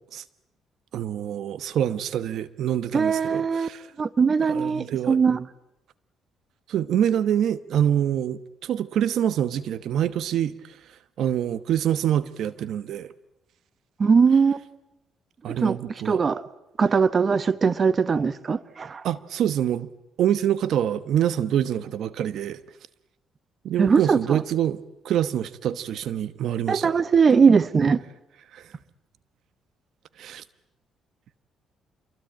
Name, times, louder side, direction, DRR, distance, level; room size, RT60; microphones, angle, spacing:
voice 1, 0.9-3.8 4.5-5.2 6.7-10.5 11.2-13.1 15.4-16.2 19.0-19.9 20.2-22.6 23.6-24.8 25.0-26.9 28.5-28.6 30.2-30.4, right 10 dB, 70° right, 1.0 m, -25 dB
voice 2, 2.9-3.7 4.0-5.5 14.0-14.7 15.6-16.5 16.8-19.1 23.8-24.4 26.7-28.0, right 5 dB, 40° right, 1.1 m, -20 dB
28.5 x 23.0 x 9.0 m
cardioid pair, 95°, 0 cm